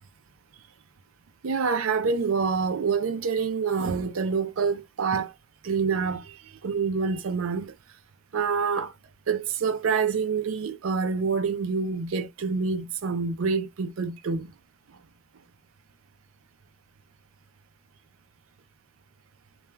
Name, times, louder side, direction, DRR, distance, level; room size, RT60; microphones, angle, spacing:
voice 1, 1.4-5.3 5.6-7.7 8.3-8.9 9.3-14.5, right 5 dB, 80° right, 0.5 m, -27 dB
2.3 x 2.2 x 3.1 m
head